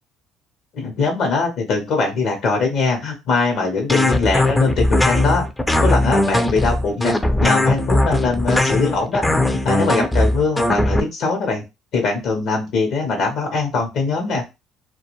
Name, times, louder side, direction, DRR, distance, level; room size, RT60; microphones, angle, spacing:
voice 1, 0.7-5.5 5.8-7.1 7.4-9.2 9.5-11.6 11.9-14.4, left 4 dB, 70° left, 2 dB, 0.8 m, -21 dB
sound 1, 3.9-11.0, left 1 dB, 10° left, 0.4 m, -18 dB
2.3 x 2.2 x 2.9 m, 0.24 s
supercardioid pair, 90°, 0 cm